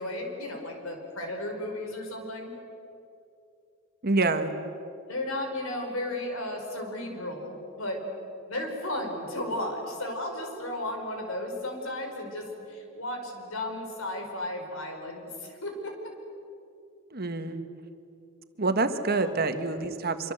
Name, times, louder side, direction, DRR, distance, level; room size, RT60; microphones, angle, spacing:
voice 1, 0.0-2.5 5.1-8.0 8.5-16.1 19.2-19.3, left 1 dB, 75° left, 3 dB, 4.8 m, -34 dB
voice 2, 4.0-4.5 17.1-17.6 18.6-20.3, right 3 dB, 45° right, 8 dB, 1.4 m, -27 dB
25.5 x 24.5 x 7.9 m, 2.6 s
head